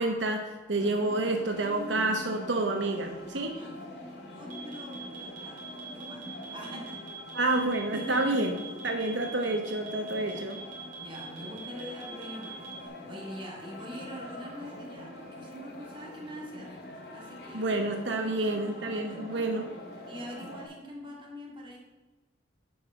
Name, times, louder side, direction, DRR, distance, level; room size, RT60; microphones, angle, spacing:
voice 1, 0.0-3.6 7.3-8.5 8.8-10.6 17.5-19.7, right 2 dB, 80° right, 4 dB, 1.0 m, -29 dB
sound 1, 0.8-20.7, left 1 dB, 60° left, 2.1 m, -44 dB
voice 2, 4.1-7.0 7.9-8.5 9.6-9.8 10.1-10.5 11.0-16.7 17.1-19.5 20.0-21.8, equal, 25° right, -2 dB, 2.1 m, -44 dB
sound 2, 4.5-12.9, right 6 dB, 45° right, 3.2 m, -44 dB
10.5 x 4.7 x 6.2 m, 1.3 s
head